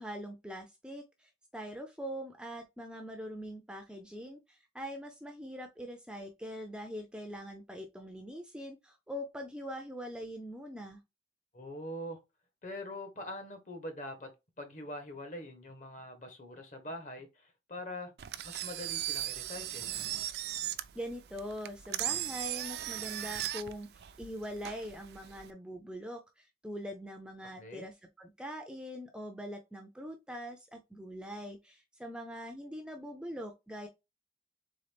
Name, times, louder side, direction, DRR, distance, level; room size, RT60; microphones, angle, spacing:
voice 1, 0.0-11.0 20.9-33.9, equal, 5° right, 0.4 m, -43 dB
voice 2, 11.5-12.2 12.6-14.3 14.6-18.1 18.4-19.9 27.6-27.9, left 1 dB, 45° left, 1.1 m, -43 dB
Engine, 18.2-25.5, right 13 dB, 65° right, 0.4 m, -38 dB
3.9 x 3.6 x 3.4 m
head